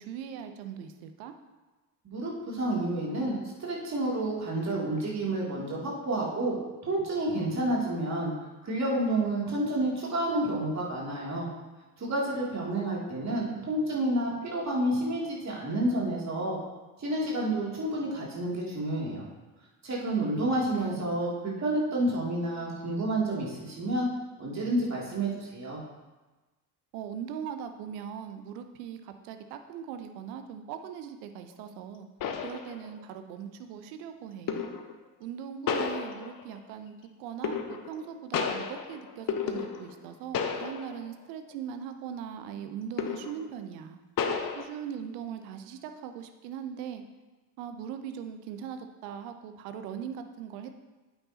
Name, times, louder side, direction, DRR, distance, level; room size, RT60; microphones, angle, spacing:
voice 1, 0.0-1.3 20.0-21.6 26.9-32.1 32.4-34.7 35.2-44.0 44.5-47.0 47.6-50.8, right 8 dB, 65° right, 8 dB, 0.9 m, -40 dB
voice 2, 2.0-6.6 6.8-8.3 8.6-11.5 12.0-16.6 17.0-19.3 19.8-24.1 24.4-25.8, right 1 dB, 35° right, -4 dB, 2.9 m, -29 dB
sound 1, 31.6-31.7 32.2-33.1 34.5-35.0 35.7-36.6 37.4-38.0 38.3-40.1 40.3-41.1 41.5-41.7 43.0-43.5 44.2-44.6, left 6 dB, 40° left, 1.0 m, -32 dB
8.9 x 8.7 x 2.9 m, 1.2 s
figure-of-eight pair, 50°, 49 cm